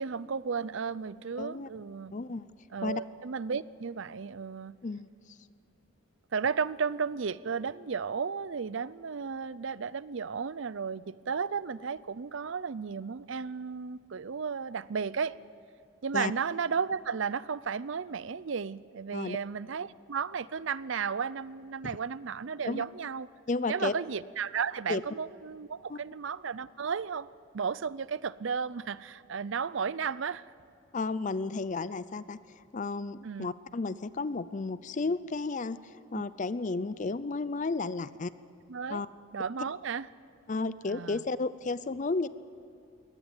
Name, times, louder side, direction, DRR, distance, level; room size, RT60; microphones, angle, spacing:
voice 1, 0.0-2.1 2.7-4.8 6.3-15.4 16.0-23.3 23.7-27.3 27.5-30.5 33.2-33.5 36.1-36.2 38.7-39.0 39.3-40.1 40.9-41.2, right 6 dB, 65° right, 19 dB, 0.5 m, -34 dB
voice 2, 1.4-1.7 2.1-2.5 2.8-3.0 4.8-5.1 16.1-16.3 19.1-19.4 21.8-21.9 22.7-22.8 23.5-23.9 24.9-25.0 25.9-26.0 30.9-35.8 36.1-38.3 38.9-39.1 40.5-42.3, left 3 dB, 35° left, 16 dB, 0.5 m, -33 dB
23.0 x 18.5 x 9.0 m, 2.6 s
head